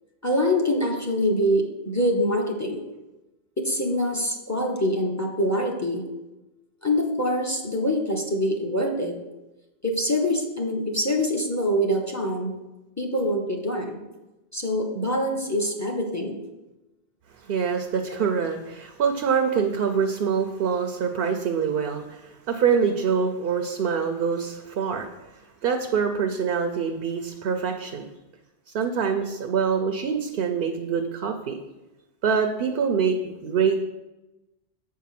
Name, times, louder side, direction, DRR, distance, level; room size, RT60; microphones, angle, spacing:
voice 1, 0.2-2.8 3.6-6.0 6.8-9.2 9.8-12.5 13.0-14.0 14.5-16.4 18.1-18.2, equal, 15° left, 1 dB, 1.0 m, -25 dB
voice 2, 17.5-22.2 22.5-25.1 25.6-28.0 28.7-31.6 32.2-33.8, right 6 dB, 65° right, 5 dB, 0.8 m, -25 dB
7.6 x 4.7 x 5.8 m, 1.0 s
omnidirectional pair, 1.1 m